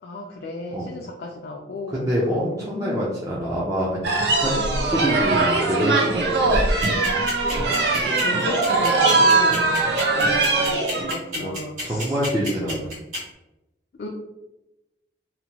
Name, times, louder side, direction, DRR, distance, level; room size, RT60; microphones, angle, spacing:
voice 1, 0.0-3.1 7.7-9.8 10.1-12.2 13.9-14.1, left 2 dB, 60° left, 0 dB, 0.3 m, -34 dB
voice 2, 1.9-4.1 4.4-6.6 9.5-9.8 11.4-11.5 11.8-12.9, equal, 15° right, -7 dB, 0.4 m, -26 dB
sound 1, 4.0-11.1, right 3 dB, 65° right, 0.5 m, -21 dB
sound 2, 6.8-13.2, equal, 40° right, 1.4 m, -30 dB
2.8 x 2.1 x 2.7 m, 0.95 s
head